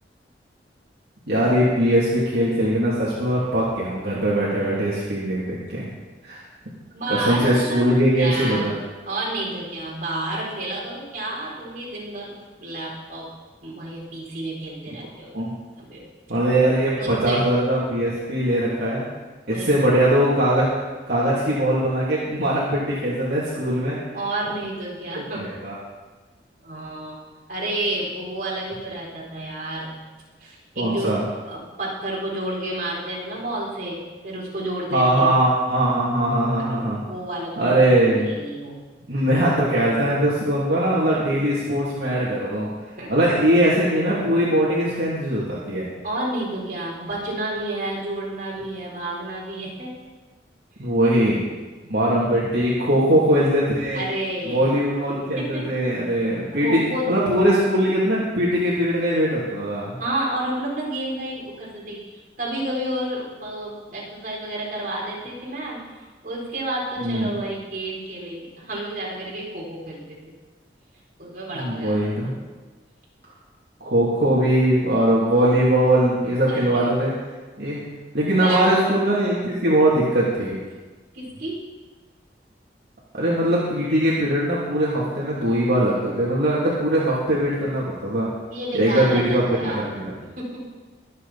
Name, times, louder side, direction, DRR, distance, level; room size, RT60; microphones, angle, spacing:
voice 1, 1.3-5.9 6.2-6.4 7.2-8.7 15.3-15.5 16.3-19.1 19.5-20.7 21.1-24.0 25.2-25.7 30.8-31.2 34.9-37.0 37.6-38.3 39.1-42.7 43.1-45.9 50.8-51.4 51.9-54.0 54.4-56.8 57.1-60.0 67.0-67.3 71.5-72.3 73.8-77.1 77.6-77.8 78.1-80.6 83.1-88.3 88.7-90.1, right 1 dB, 65° right, -7 dB, 2.7 m, -21 dB
voice 2, 6.9-8.7 9.0-13.3 13.6-15.3 15.8-16.0 17.0-17.5 19.5-19.7 24.1-25.5 26.6-27.2 27.5-29.9 30.4-31.2 31.5-35.3 36.6-38.0 38.3-39.1 41.1-41.4 43.0-43.1 46.0-49.9 53.9-54.7 55.3-55.7 56.6-57.1 60.0-62.1 62.4-70.2 71.2-72.4 76.5-76.9 78.4-78.8 81.1-81.6 88.5-89.9 90.2-90.7, right 1 dB, 50° right, -5 dB, 4.2 m, -30 dB
23.5 x 8.1 x 4.2 m, 1.3 s
head